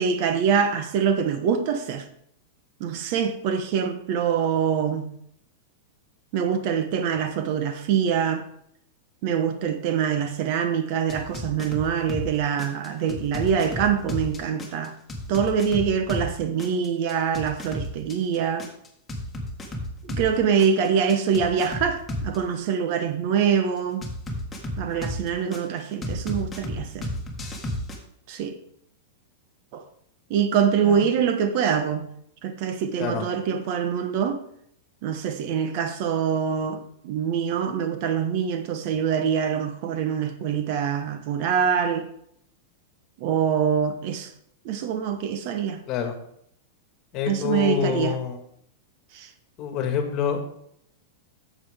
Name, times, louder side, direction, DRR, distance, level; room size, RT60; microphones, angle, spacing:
voice 1, 0.0-2.1 2.8-5.1 6.3-8.5 9.2-15.0 15.3-18.7 20.0-24.0 24.8-27.1 28.3-28.6 29.7-29.8 30.3-32.1 32.4-34.4 35.0-42.1 43.2-44.3 44.6-45.8 47.3-48.2 49.1-49.3, right 7 dB, 50° right, 1.0 m, -24 dB
sound 1, 11.1-12.3 12.6-16.3 16.6-20.3 20.6-22.4 24.0-25.6 26.0-28.0, left 1 dB, 10° left, 1.7 m, -32 dB
voice 2, 47.1-48.4 49.6-50.4, left 7 dB, 40° left, 1.6 m, -26 dB
11.0 x 7.4 x 3.6 m
supercardioid pair, 140°, 0 cm